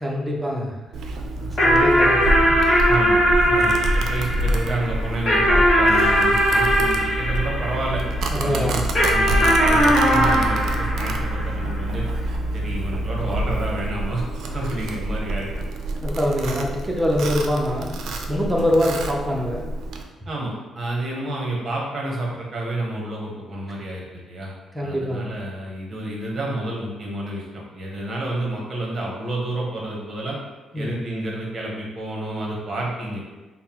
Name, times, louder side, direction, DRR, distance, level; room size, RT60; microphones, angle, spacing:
voice 1, 0.0-0.8 1.4-2.9 3.4-3.7 8.3-8.9 16.0-18.0 18.3-19.7 24.7-25.4 30.7-31.0, equal, 10° right, -2 dB, 0.5 m, -24 dB
Domestic sounds home sounds, 0.9-20.0, right 1 dB, 60° right, 0.4 m, -27 dB
sound 1, 1.6-8.3 9.0-11.8, equal, 30° left, 1.0 m, -19 dB
voice 2, 2.9-3.2 3.5-8.0 8.4-12.1 12.5-14.2 14.5-15.5 20.3-24.5 24.8-30.4 30.7-33.3, right 1 dB, 30° right, -2 dB, 0.9 m, -29 dB
5.5 x 2.0 x 2.9 m, 1.2 s
cardioid pair, 165°, 0 cm